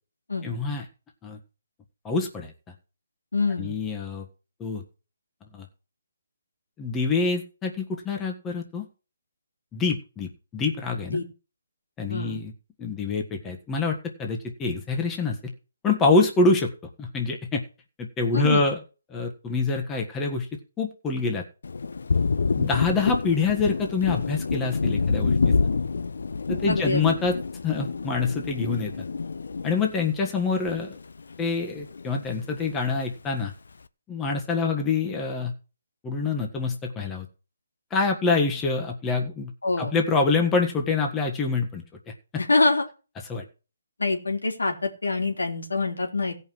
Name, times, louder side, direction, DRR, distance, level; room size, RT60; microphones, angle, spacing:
voice 1, 0.4-0.8 1.2-1.4 2.0-2.5 3.6-4.2 4.6-4.8 5.5-5.7 6.8-8.9 9.7-11.2 12.0-12.5 12.8-15.4 15.8-16.7 17.0-17.6 18.0-18.8 19.1-20.5 20.8-21.4 22.6-25.5 26.5-27.4 27.6-28.9 29.6-31.0 31.4-33.5 34.1-35.5 36.0-37.3 37.9-39.5 39.8-42.1 43.3-43.4, left 4 dB, 15° left, 2 dB, 1.5 m, -26 dB
voice 2, 3.3-3.8 11.1-11.2 12.1-12.4 18.3-18.7 26.7-27.1 39.6-39.9 42.4-42.8 44.0-46.3, left 3 dB, 85° left, 2 dB, 3.5 m, -25 dB
Thunder, 21.6-31.4 31.7-32.9, left 4 dB, 70° left, 0.7 m, -28 dB
16.0 x 5.7 x 6.3 m, 0.35 s
hypercardioid pair, 155°, 0 cm